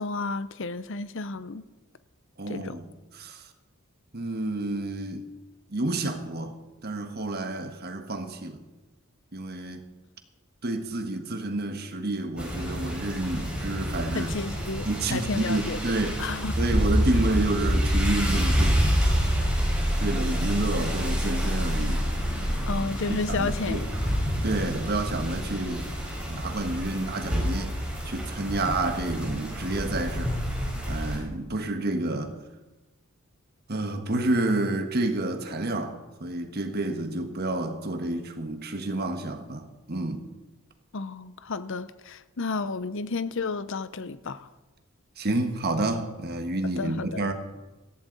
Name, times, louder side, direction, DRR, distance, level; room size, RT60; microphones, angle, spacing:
voice 1, 0.0-1.6 2.5-2.8 14.1-15.8 16.2-16.6 22.7-23.9 40.9-44.5 46.8-47.2, left 3 dB, 60° left, 0.7 m, -32 dB
voice 2, 2.4-2.9 3.2-3.4 4.1-5.2 5.7-6.6 6.8-8.6 9.3-9.9 10.6-14.3 14.8-16.2 16.6-18.8 20.0-22.1 23.3-23.8 24.4-25.9 26.3-27.7 28.0-30.4 30.9-32.4 33.7-40.3 45.2-47.3, right 2 dB, 45° right, 1.4 m, -29 dB
sound 1, 12.4-31.2, equal, 5° right, 4.1 m, -27 dB
17.5 x 14.5 x 4.0 m
head